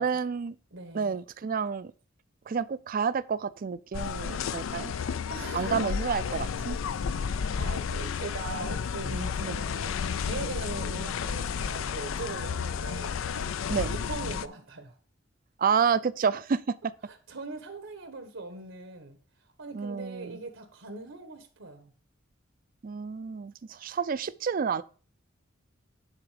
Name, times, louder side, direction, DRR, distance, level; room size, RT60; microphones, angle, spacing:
voice 1, 0.0-0.6 0.9-1.9 2.5-4.9 5.5-6.8 9.4-9.6 13.7-13.9 15.6-16.8 19.7-20.4 22.8-24.8, right 6 dB, 45° right, 0.4 m, -29 dB
voice 2, 0.7-1.2 5.3-5.9 7.6-13.5 13.8-14.9 17.1-19.2 19.6-21.9, right 3 dB, 85° right, 1.3 m, -40 dB
sound 1, 3.9-14.5, left 6 dB, 80° left, 0.4 m, -32 dB
10.5 x 3.7 x 4.9 m
head